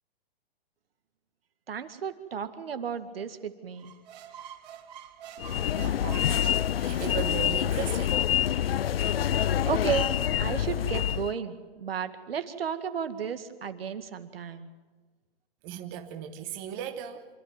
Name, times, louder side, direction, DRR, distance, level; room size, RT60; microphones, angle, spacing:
voice 1, 1.7-3.9 9.6-10.1 10.4-14.7, right 7 dB, 75° right, 2.0 m, -33 dB
sound 1, 3.8-7.8, right 9 dB, 45° right, 3.4 m, -47 dB
sound 2, 5.4-11.3, left 10 dB, 75° left, 0.6 m, -26 dB
voice 2, 5.8-6.4 6.8-8.1 15.6-17.3, right 9 dB, 25° right, 1.1 m, -37 dB
26.0 x 12.5 x 9.0 m
hypercardioid pair, 160°, 30 cm